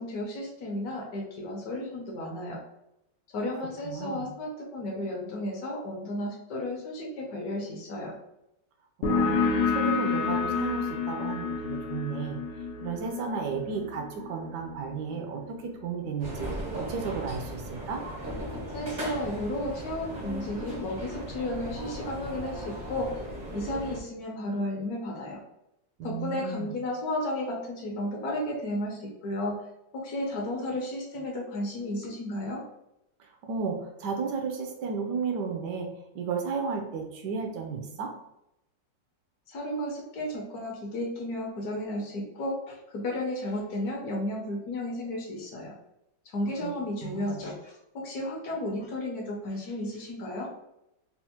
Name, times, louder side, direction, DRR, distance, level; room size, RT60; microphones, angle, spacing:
voice 1, 0.0-2.6 3.3-8.2 18.7-23.3 23.5-25.4 26.0-29.6 29.9-32.6 39.5-45.7 46.2-50.5, left 1 dB, 65° left, 0 dB, 1.1 m, -33 dB
voice 2, 3.8-4.3 9.1-12.4 12.8-16.5 16.7-18.0 26.0-26.7 33.4-35.9 36.1-38.1 46.6-46.7 47.0-47.4, right 5 dB, 75° right, 3 dB, 1.1 m, -33 dB
sound 1, 9.0-16.3, left 5 dB, 85° left, 1.3 m, -30 dB
sound 2, 16.2-24.0, right 1 dB, 50° right, 0.5 m, -37 dB
4.1 x 2.0 x 2.8 m, 0.84 s
omnidirectional pair, 2.0 m